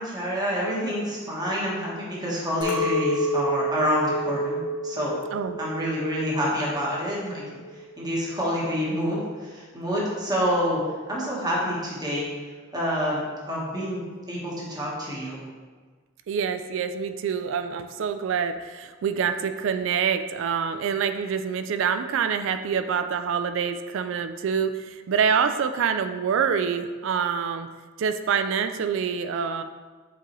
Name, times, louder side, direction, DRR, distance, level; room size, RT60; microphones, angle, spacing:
voice 1, 0.0-5.2 5.6-7.4 8.0-10.8 11.1-12.3 12.7-13.2 13.5-15.5, equal, 20° right, -6 dB, 1.3 m, -27 dB
Chink clink, 2.6-7.0 7.3-8.0, equal, 85° left, 1.3 m, -29 dB
voice 2, 16.3-27.7 28.0-29.6, right 6 dB, 65° right, 9 dB, 0.3 m, -26 dB
8.2 x 3.8 x 3.0 m, 1.5 s
head